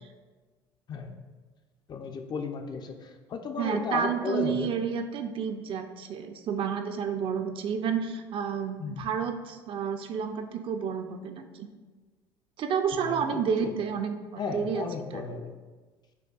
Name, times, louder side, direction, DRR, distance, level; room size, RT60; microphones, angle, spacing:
voice 1, 1.9-4.7 8.8-9.0 13.0-13.7 14.4-15.5, left 4 dB, 35° left, 5 dB, 0.4 m, -34 dB
voice 2, 3.6-11.7 12.6-14.8 15.1-15.2, right 7 dB, 45° right, 6 dB, 0.4 m, -30 dB
6.6 x 2.2 x 2.3 m, 1.3 s
hypercardioid pair, 65°, 12 cm